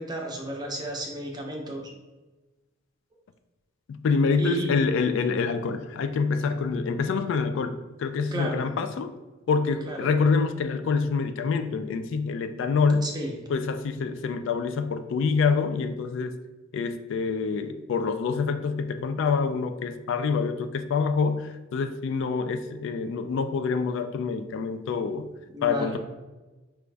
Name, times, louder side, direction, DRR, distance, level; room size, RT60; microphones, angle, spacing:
voice 1, 0.0-1.9 4.4-4.7 8.3-8.6 9.8-10.1 13.0-13.3 25.5-26.0, right 1 dB, 20° right, 1 dB, 0.6 m, -32 dB
voice 2, 3.9-9.1 9.5-13.1 13.5-16.4 16.7-25.3 25.6-26.0, left 5 dB, 65° left, 10 dB, 0.3 m, -26 dB
5.1 x 2.4 x 3.3 m, 1.2 s
head